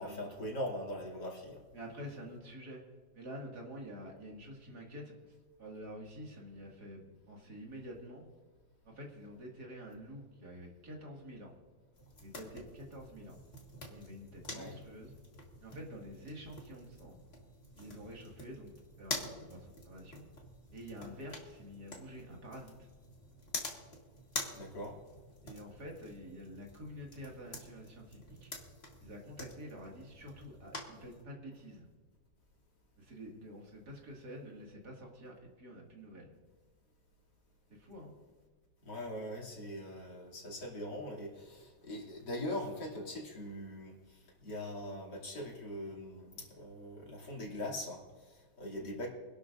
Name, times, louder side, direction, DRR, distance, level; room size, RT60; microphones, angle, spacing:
voice 1, 0.0-1.6 14.5-14.8 24.5-25.0 38.8-49.1, left 1 dB, 75° left, -3 dB, 3.5 m, -41 dB
voice 2, 1.7-2.8 3.1-8.3 8.8-11.6 12.2-13.4 13.9-15.1 15.6-17.2 17.7-18.7 19.0-20.2 20.7-22.9 25.4-28.5 29.0-31.8 33.0-36.3 37.7-38.1 48.7-48.8, equal, 65° right, -1 dB, 2.8 m, -48 dB
sound 1, 11.9-31.2, left 2 dB, 35° left, 2.1 m, -47 dB
25.0 x 12.0 x 2.6 m, 1.4 s
omnidirectional pair, 1.8 m